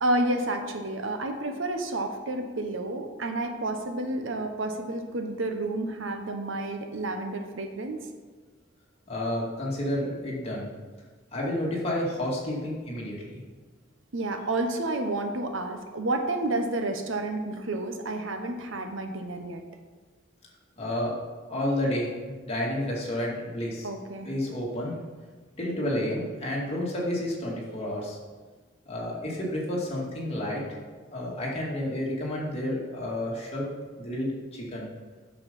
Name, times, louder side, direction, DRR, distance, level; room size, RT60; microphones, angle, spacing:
voice 1, 0.0-8.0 14.1-19.6 23.8-24.3, right 2 dB, 80° right, 5 dB, 1.0 m, -30 dB
voice 2, 9.1-10.7 11.3-13.4 20.8-21.2 21.5-23.9 24.2-24.9 25.6-28.2 28.9-30.6 31.1-33.7 34.0-34.9, left 1 dB, 30° left, -4 dB, 2.3 m, -30 dB
8.2 x 6.7 x 5.4 m, 1.4 s
head